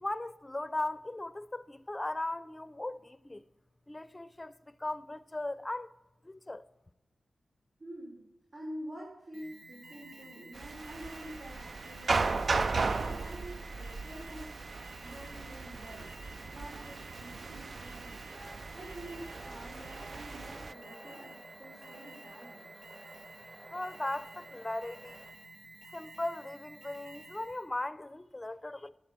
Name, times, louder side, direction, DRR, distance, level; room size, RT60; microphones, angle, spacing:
voice 1, 0.0-3.4 3.9-5.9 6.2-6.7 23.7-25.2 25.9-28.9, left 2 dB, 20° left, 0.6 m, -38 dB
voice 2, 7.8-8.2 8.5-12.5 12.9-16.1 16.5-18.2 18.7-22.7, equal, 70° right, 5.1 m, -47 dB
Alarm, 9.3-27.7, right 2 dB, 90° right, 1.3 m, -52 dB
sound 1, 10.5-20.7, right 3 dB, 55° right, 0.4 m, -36 dB
sound 2, 18.3-25.3, right 1 dB, 40° right, 3.8 m, -53 dB
11.0 x 10.5 x 5.9 m
cardioid pair, 65°, 0 cm